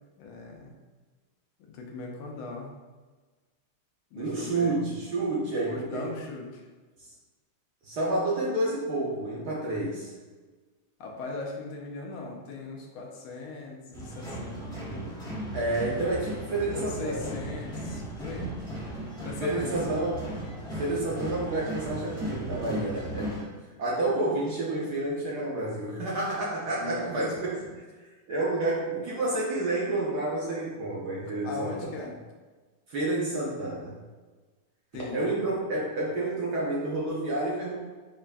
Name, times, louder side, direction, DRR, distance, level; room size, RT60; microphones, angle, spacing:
voice 1, 0.2-0.7 1.6-2.7 4.1-4.8 5.6-6.6 11.0-15.3 16.6-18.6 19.2-20.0 26.8-27.3 31.2-32.1 34.9-35.4, left 3 dB, 80° left, 0 dB, 1.5 m, -39 dB
voice 2, 4.2-6.1 7.8-10.1 15.5-17.3 19.4-20.3 20.8-23.3 23.8-31.9 32.9-33.9 35.1-37.8, right 2 dB, 65° right, -5 dB, 1.1 m, -29 dB
sound 1, 13.9-23.4, right 1 dB, 5° left, 0.4 m, -36 dB
5.3 x 2.5 x 2.2 m, 1.3 s
omnidirectional pair, 2.2 m